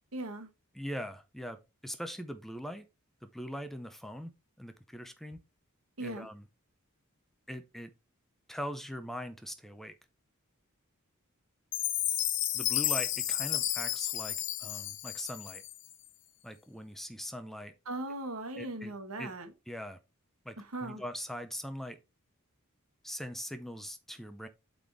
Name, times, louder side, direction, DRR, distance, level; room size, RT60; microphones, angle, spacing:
voice 1, 0.1-0.5 6.0-6.3 17.9-19.5 20.7-21.0, right 2 dB, 75° right, 1.4 m, -38 dB
voice 2, 0.7-2.9 3.2-4.3 4.6-5.4 6.0-6.4 7.5-7.9 8.5-9.9 12.5-15.6 16.4-17.7 18.6-18.9 19.2-19.3 19.7-20.0 20.4-20.6 20.8-22.0 23.0-24.5, equal, ahead, 0.6 m, -41 dB
Chime, 11.7-15.9, left 12 dB, 55° left, 0.8 m, -32 dB
8.1 x 4.0 x 3.5 m
head